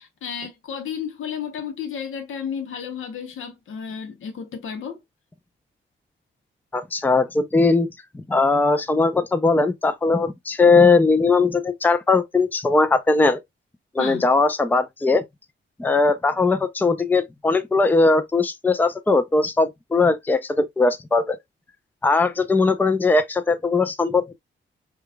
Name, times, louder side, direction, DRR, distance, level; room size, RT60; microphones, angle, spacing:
voice 1, 0.0-5.0 14.0-14.3, left 7 dB, 85° left, 0.8 m, -32 dB
voice 2, 6.7-7.9 8.1-13.4 13.9-15.2 15.8-21.4 22.0-24.3, left 3 dB, 10° left, 0.4 m, -19 dB
4.8 x 2.3 x 2.2 m
cardioid pair, 105°, 21 cm